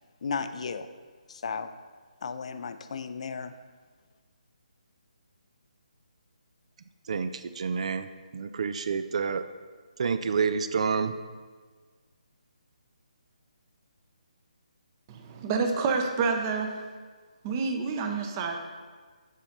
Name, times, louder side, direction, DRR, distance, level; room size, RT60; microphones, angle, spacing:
voice 1, 0.2-0.9 1.3-1.7 2.2-3.5, left 5 dB, 50° left, 11 dB, 0.4 m, -34 dB
voice 2, 7.1-8.1 8.3-9.4 10.0-11.1, right 5 dB, 50° right, 10 dB, 0.4 m, -28 dB
voice 3, 15.1-16.8 17.4-18.6, right 4 dB, 25° right, 4 dB, 0.7 m, -28 dB
7.3 x 4.1 x 5.2 m, 1.5 s
figure-of-eight pair, 155°, 4 cm